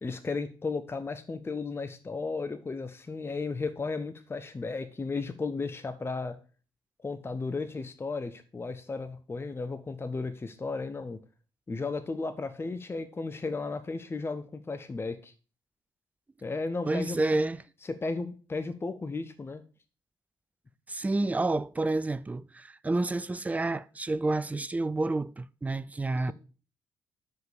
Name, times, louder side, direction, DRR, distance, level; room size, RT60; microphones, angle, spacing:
voice 1, 0.0-6.4 7.0-11.2 11.7-15.3 16.4-17.3 18.0-19.6 26.2-26.3, left 3 dB, 20° left, 0.7 m, -34 dB
voice 2, 16.8-17.6 20.9-26.3, right 2 dB, 15° right, 0.4 m, -29 dB
5.7 x 5.6 x 6.6 m
figure-of-eight pair, 40°, 11 cm